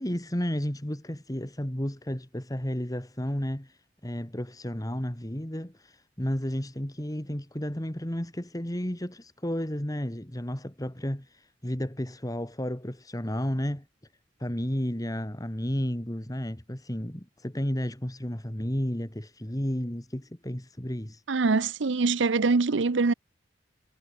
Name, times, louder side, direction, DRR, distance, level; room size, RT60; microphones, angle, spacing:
voice 1, 0.0-3.7 4.0-13.9 14.4-21.2, equal, 20° left, 2.4 m, -32 dB
voice 2, 21.3-23.1, right 4 dB, 90° right, 0.7 m, -24 dB
head